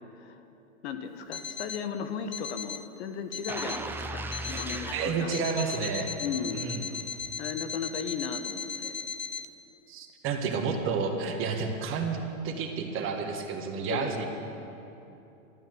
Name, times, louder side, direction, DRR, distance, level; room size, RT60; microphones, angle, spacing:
voice 1, 0.8-5.8 6.2-6.7 7.4-8.9 13.9-14.1, left 6 dB, 55° left, 8 dB, 1.3 m, -36 dB
Alarm, 1.3-1.9 2.3-2.9 3.3-3.9 4.3-4.9 5.3-9.5, left 6 dB, 80° left, 0.9 m, -37 dB
sound 1, 3.5-6.4 6.8-7.0, right 2 dB, 5° right, 0.5 m, -38 dB
voice 2, 4.9-6.1 6.5-6.8 9.9-14.2, right 5 dB, 30° right, 3 dB, 1.7 m, -30 dB
12.5 x 12.0 x 7.9 m, 2.9 s
hypercardioid pair, 125°, 40 cm